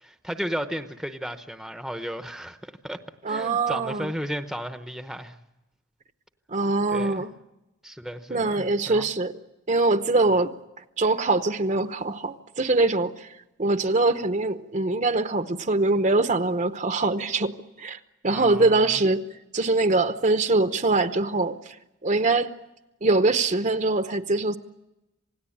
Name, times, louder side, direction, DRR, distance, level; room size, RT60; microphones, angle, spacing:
voice 1, 0.0-3.0 3.3-5.4 6.9-7.2 7.8-9.1 18.3-19.0, equal, ahead, 0.9 m, -34 dB
voice 2, 3.2-4.1 6.5-7.3 8.3-9.4 9.7-10.5 11.0-13.3 13.6-17.5 17.8-18.0 18.2-19.2 19.5-21.7 22.0-22.5 23.0-24.6, right 3 dB, 35° right, 0.9 m, -23 dB
27.5 x 18.0 x 8.6 m
head